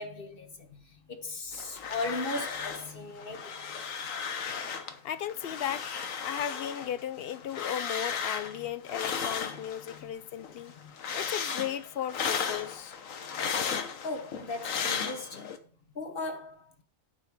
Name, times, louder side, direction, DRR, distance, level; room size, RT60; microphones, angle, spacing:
voice 1, 0.0-3.9 4.4-4.5 8.5-8.7 9.5-10.1 10.8-11.0 13.4-13.5 14.0-15.6 15.9-16.7, left 2 dB, 45° left, 1.4 m, -38 dB
sound 1, 1.5-2.9 3.2-5.0 5.3-10.0 10.4-15.6, left 6 dB, 85° left, 1.4 m, -35 dB
voice 2, 5.0-5.9 6.2-10.7 11.1-12.9, left 10 dB, 60° left, 0.7 m, -35 dB
8.6 x 4.8 x 7.4 m
omnidirectional pair, 1.3 m